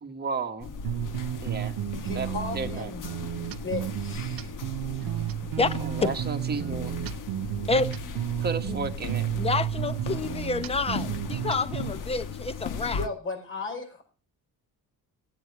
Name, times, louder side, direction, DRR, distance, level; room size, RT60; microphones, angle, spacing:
voice 1, 0.0-0.7 1.4-1.8 2.1-2.9 5.8-7.0 8.4-9.3, right 4 dB, 30° right, 1.4 m, -33 dB
sound 1, 0.6-13.1, left 6 dB, 65° left, 1.3 m, -37 dB
sound 2, 0.8-11.9, right 13 dB, 90° right, 0.8 m, -32 dB
voice 2, 2.0-3.1 3.6-4.5 12.9-14.0, left 3 dB, 35° left, 5.4 m, -35 dB
voice 3, 5.6-6.1 7.7-7.9 8.7-8.8 9.3-13.1, left 3 dB, 15° left, 0.8 m, -28 dB
16.0 x 9.5 x 4.7 m
cardioid pair, 170°, 34 cm